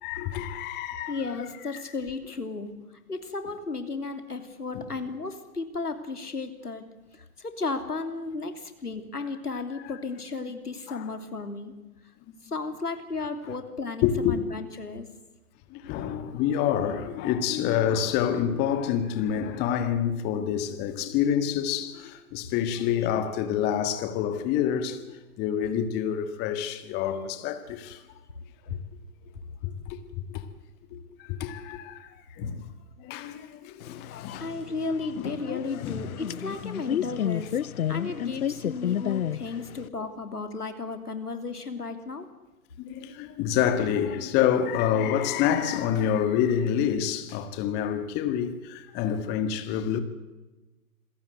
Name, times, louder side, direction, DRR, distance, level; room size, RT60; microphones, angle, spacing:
voice 1, 0.0-1.2 1.7-1.8 4.7-4.8 9.8-9.9 10.9-11.1 12.3-12.4 13.5-13.6 14.0-14.4 15.7-28.0 28.7-28.8 29.6-30.4 30.9-32.7 33.0-34.5 35.2-35.3 35.8-36.1 38.0-38.1 39.0-39.1 39.5-39.9 42.8-50.0, left 9 dB, 20° left, 1.7 m, -28 dB
voice 2, 1.1-2.7 3.1-6.8 7.1-11.7 12.4-15.1 34.4-37.6 37.9-42.3, left 3 dB, 90° left, 3.2 m, -34 dB
sound 1, 33.8-39.9, left 10 dB, 65° left, 0.8 m, -31 dB
27.0 x 17.0 x 8.1 m
figure-of-eight pair, 130°, 45 cm